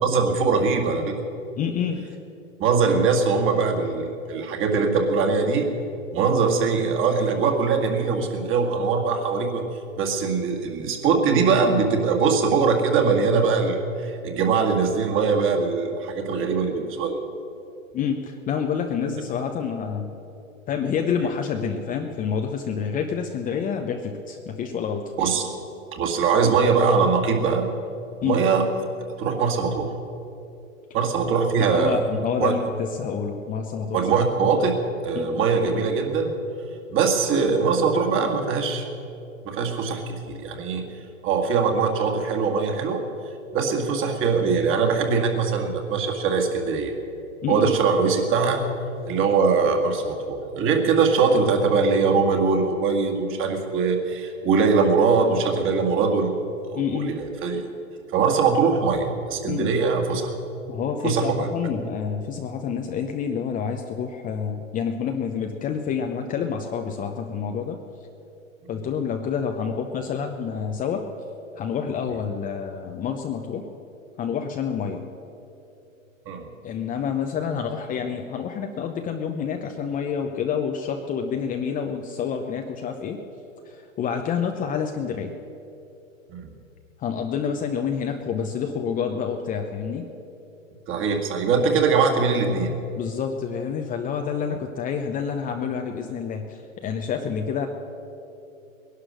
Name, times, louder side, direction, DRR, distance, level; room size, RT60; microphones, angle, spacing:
voice 1, 0.0-1.1 2.6-5.7 6.1-9.6 10.0-17.2 25.2-25.5 25.9-27.7 28.2-28.6 29.2-29.9 30.9-32.0 32.4-32.6 33.9-34.8 35.0-36.3 36.9-38.8 39.4-40.8 41.2-43.0 43.5-46.9 47.5-48.7 49.1-56.3 56.6-57.6 58.1-60.3 61.0-61.5 68.7-68.8 76.3-76.5 86.3-86.5 90.9-92.7, right 5 dB, 30° right, 3 dB, 2.1 m, -22 dB
voice 2, 1.6-2.0 17.9-20.1 20.7-25.1 28.2-28.4 31.6-34.2 35.1-35.4 47.4-47.7 56.7-57.1 59.5-59.7 60.7-67.8 68.7-71.1 71.6-73.7 74.2-75.1 76.6-83.2 83.7-85.3 87.0-90.1 93.0-97.7, left 7 dB, 20° left, 4 dB, 0.8 m, -28 dB
19.5 x 11.5 x 6.5 m, 2.8 s
hypercardioid pair, 120°, 40 cm